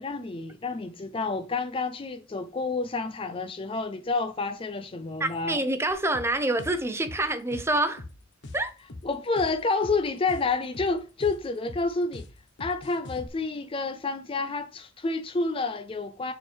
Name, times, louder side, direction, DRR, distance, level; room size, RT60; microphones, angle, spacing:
voice 1, 0.0-5.6 9.0-12.3 12.6-16.3, left 3 dB, 25° left, 0.4 m, -29 dB
voice 2, 5.2-8.0 8.5-8.7, right 2 dB, 15° right, 0.8 m, -27 dB
sound 1, 5.9-13.3, left 2 dB, 60° left, 1.0 m, -43 dB
6.8 x 4.5 x 3.4 m
head